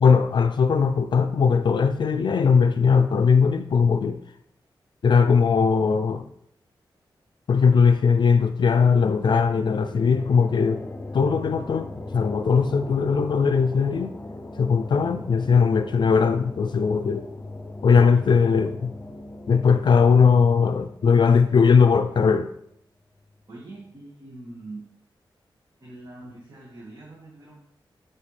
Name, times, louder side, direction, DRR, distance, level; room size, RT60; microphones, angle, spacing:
voice 1, 0.0-4.2 5.0-6.3 7.5-10.8 11.1-14.2 14.6-17.3 17.8-18.9 19.5-22.5, left 5 dB, 65° left, 9 dB, 0.4 m, -19 dB
sound 1, 9.1-22.5, left 2 dB, 20° left, 0.8 m, -39 dB
voice 2, 23.5-25.0 25.8-27.6, right 2 dB, 45° right, -6 dB, 2.0 m, -43 dB
10.5 x 4.5 x 3.4 m, 0.72 s
wide cardioid pair, 95°, 9 cm